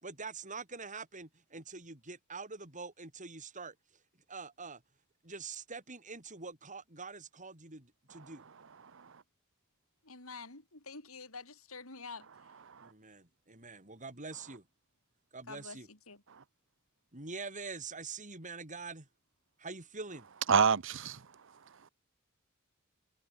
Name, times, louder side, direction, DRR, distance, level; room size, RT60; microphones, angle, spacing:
voice 1, 0.0-3.7 4.3-4.8 5.2-8.4 12.8-14.6 15.3-15.9 17.1-19.1 19.6-20.3, right 4 dB, 35° right, 5.9 m, -45 dB
voice 2, 10.0-12.5 15.5-16.2, left 4 dB, 80° left, 6.5 m, -48 dB
voice 3, 20.5-21.2, right 6 dB, 60° right, 0.9 m, -27 dB
head